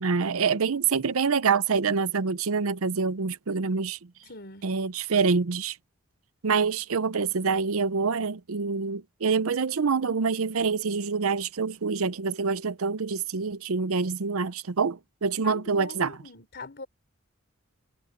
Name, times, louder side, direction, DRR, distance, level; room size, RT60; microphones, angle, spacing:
voice 1, 0.0-4.0 4.6-5.8 6.4-16.2, right 5 dB, 80° right, 0.7 m, -26 dB
voice 2, 4.3-4.7 15.4-16.9, left 3 dB, 50° left, 4.5 m, -42 dB
head